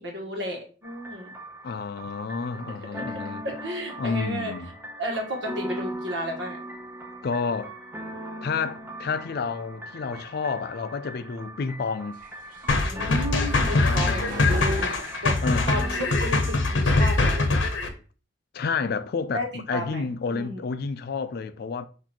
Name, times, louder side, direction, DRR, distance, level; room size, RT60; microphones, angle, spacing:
voice 1, 0.0-1.3 2.7-2.8 3.4-4.5 5.0-6.6 12.8-14.9 15.2-15.3 15.7-17.6 19.3-19.5 19.7-20.6, equal, 65° right, 1.4 m, -33 dB
sound 1, 0.8-16.8, right 1 dB, 15° right, 0.7 m, -40 dB
voice 2, 1.6-3.4 4.0-4.7 7.2-7.7 8.4-12.2 13.8-14.7 15.4-15.7 18.5-21.8, left 5 dB, 55° left, 0.4 m, -30 dB
sound 2, 12.1-15.8 16.2-16.9, right 3 dB, 45° right, 0.7 m, -41 dB
sound 3, 12.7-17.9, left 2 dB, 85° left, 0.8 m, -23 dB
6.1 x 2.7 x 2.9 m
head